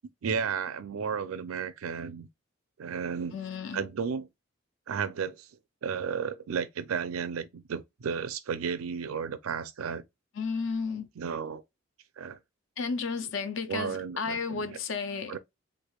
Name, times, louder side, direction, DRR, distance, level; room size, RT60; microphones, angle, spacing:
voice 1, 0.2-2.3 2.8-3.4 3.7-4.3 4.9-5.5 5.8-10.0 11.2-11.6 12.2-12.4 13.7-14.8 15.3-15.4, right 6 dB, 85° right, 0.5 m, -33 dB
voice 2, 3.3-3.8 10.4-11.1 12.8-15.4, left 5 dB, 65° left, 0.5 m, -33 dB
3.6 x 3.3 x 2.3 m
head